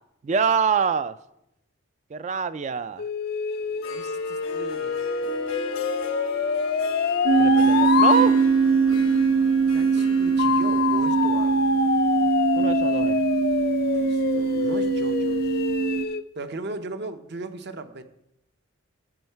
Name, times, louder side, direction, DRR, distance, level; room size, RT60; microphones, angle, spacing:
voice 1, 0.2-1.2 2.1-3.0 7.4-8.4 12.6-13.2, right 6 dB, 35° right, 0.3 m, -25 dB
sound 1, 3.0-8.2 10.4-16.2, left 6 dB, 45° left, 0.4 m, -26 dB
Harp, 3.6-12.5, left 3 dB, 85° left, 1.0 m, -38 dB
voice 2, 3.9-5.3 9.7-11.7 13.9-15.6 16.3-18.0, right 2 dB, 55° right, 0.8 m, -38 dB
sound 2, 7.3-16.1, right 5 dB, 85° right, 0.5 m, -22 dB
15.0 x 5.6 x 4.5 m
head